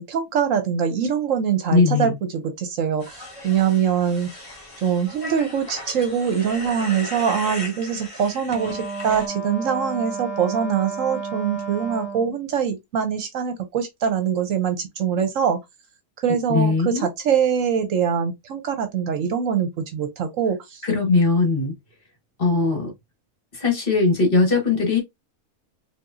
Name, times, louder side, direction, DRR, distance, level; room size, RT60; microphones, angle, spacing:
voice 1, 0.0-4.3 4.8-15.6 16.2-20.8, right 7 dB, 65° right, 1.0 m, -23 dB
voice 2, 1.7-2.1 16.5-17.1 20.8-21.7 22.4-22.9 23.5-25.0, left 4 dB, 40° left, 1.3 m, -19 dB
sound 1, 3.0-9.3, left 1 dB, 25° left, 1.3 m, -37 dB
Wind instrument woodwind instrument, 8.5-12.4, right 4 dB, 40° right, 0.8 m, -32 dB
4.7 x 2.5 x 2.6 m
omnidirectional pair, 1.6 m